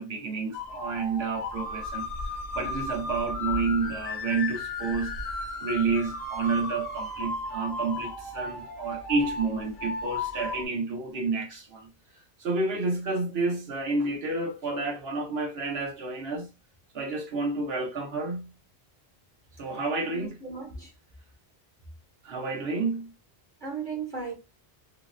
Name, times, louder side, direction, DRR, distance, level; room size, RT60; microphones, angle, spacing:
voice 1, 0.0-2.1 2.5-5.2 5.6-11.9 12.4-16.5 16.9-18.5 19.6-20.3 22.2-23.1, right 3 dB, 80° right, 1.2 m, -30 dB
sound 1, 0.5-10.6, left 2 dB, 55° left, 0.8 m, -35 dB
voice 2, 20.0-20.9 23.6-24.3, right 5 dB, 50° right, 0.9 m, -36 dB
3.8 x 2.1 x 2.5 m
omnidirectional pair, 1.0 m